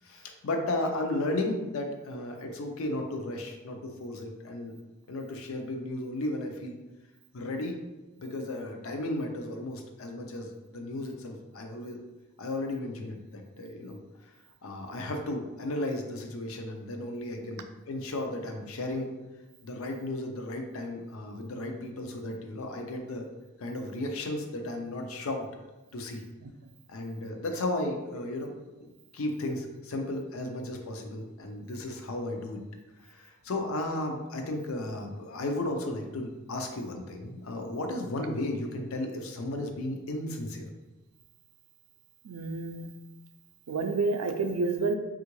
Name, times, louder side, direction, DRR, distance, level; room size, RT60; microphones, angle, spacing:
voice 1, 0.0-4.7 5.1-6.8 7.3-7.8 8.2-12.0 12.4-14.0 14.6-19.1 19.6-23.3 23.6-25.5 25.9-26.3 26.9-28.5 28.8-28.9 29.1-32.6 33.0-40.7, left 1 dB, 70° left, 3 dB, 0.5 m, -34 dB
voice 2, 42.2-42.9 43.7-45.0, right 3 dB, 85° right, 6 dB, 0.4 m, -29 dB
3.6 x 2.4 x 3.0 m, 1.1 s
head